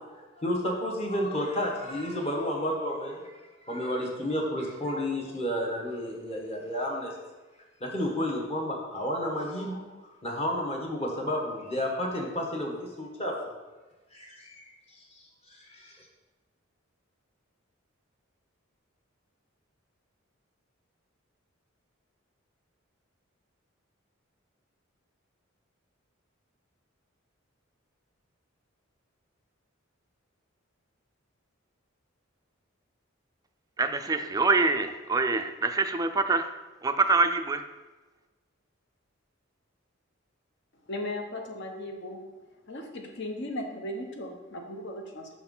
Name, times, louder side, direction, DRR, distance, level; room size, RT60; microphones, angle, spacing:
voice 1, 0.1-3.4 3.6-7.1 7.8-13.5 14.1-14.7 15.1-16.1, equal, 30° left, -1 dB, 1.4 m, -31 dB
voice 2, 33.8-36.5 36.8-37.6, right 3 dB, 15° right, 7 dB, 0.4 m, -25 dB
voice 3, 40.9-42.2 42.7-45.3, left 1 dB, 60° left, 3 dB, 1.0 m, -37 dB
6.1 x 4.6 x 5.4 m, 1.2 s
head